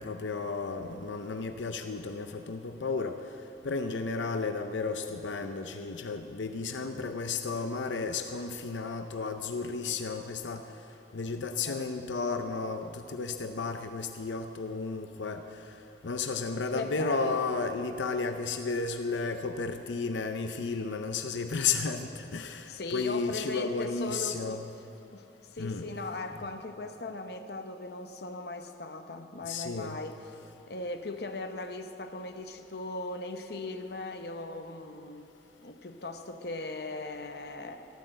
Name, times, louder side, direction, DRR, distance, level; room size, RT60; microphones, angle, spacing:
voice 1, 0.0-3.2 3.6-10.6 11.1-15.4 16.0-24.7 25.6-25.8 29.5-30.0, left 4 dB, 90° left, 7 dB, 0.6 m, -33 dB
voice 2, 16.7-17.4 22.7-24.6 25.1-30.2 30.7-35.3 35.6-37.9, left 2 dB, 60° left, 6 dB, 0.9 m, -38 dB
13.0 x 12.5 x 7.7 m, 2.9 s
head